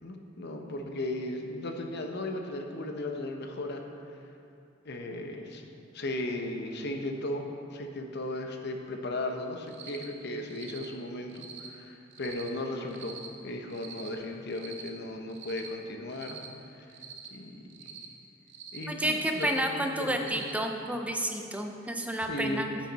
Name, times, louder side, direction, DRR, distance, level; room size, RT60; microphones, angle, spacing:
voice 1, 0.0-3.8 4.8-5.6 5.9-13.2 13.4-16.4 16.7-16.9 17.3-18.0 18.7-20.4 22.2-22.7, left 1 dB, 55° left, 4 dB, 0.9 m, -36 dB
Cricket, 9.7-10.1 10.5-10.9 11.3-11.7 12.1-12.5 12.9-13.3 13.7-14.1 14.5-14.9 15.3-15.7 16.1-16.5 16.9-17.3 17.7-18.1 18.5-18.8 19.3-19.7 20.1-20.6, right 7 dB, 60° right, 0.8 m, -45 dB
voice 2, 18.9-22.8, right 1 dB, 5° right, 4 dB, 0.6 m, -30 dB
9.1 x 9.1 x 4.1 m, 2.6 s
head